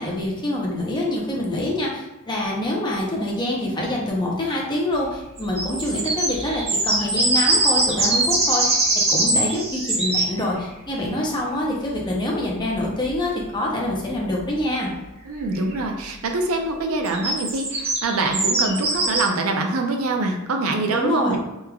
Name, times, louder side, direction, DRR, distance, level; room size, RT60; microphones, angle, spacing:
voice 1, 0.0-8.8 9.1-14.9 20.9-21.4, left 1 dB, 20° left, -3 dB, 0.6 m, -25 dB
sound 1, 5.4-10.3 13.1-13.2 15.7-15.8 17.0-19.3, right 2 dB, 30° right, 0.7 m, -22 dB
voice 2, 15.3-21.4, right 3 dB, 80° right, 3 dB, 0.5 m, -24 dB
3.5 x 3.1 x 2.3 m, 1.0 s
head